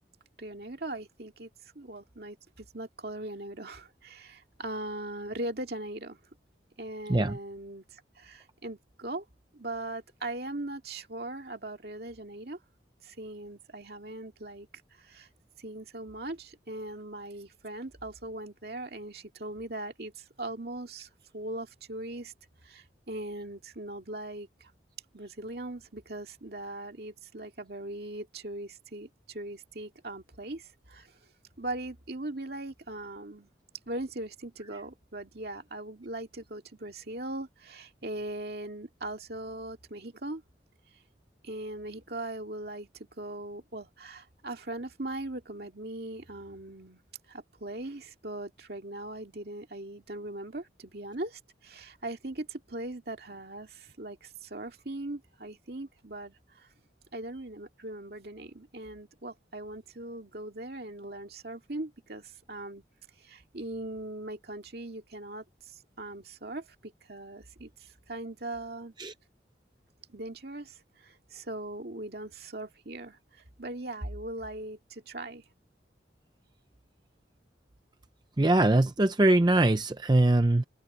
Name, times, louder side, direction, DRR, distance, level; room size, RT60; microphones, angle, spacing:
voice 1, 0.4-1.5 1.8-6.2 6.8-9.2 9.5-12.6 13.0-14.7 15.0-15.3 15.6-22.3 22.6-24.7 25.1-31.1 31.6-33.5 33.9-40.4 41.4-47.0 47.3-56.7 57.1-62.8 63.2-68.9 70.1-75.5, right 1 dB, 60° right, 2.3 m, -40 dB
voice 2, 78.4-80.6, right 2 dB, 25° right, 0.5 m, -22 dB
head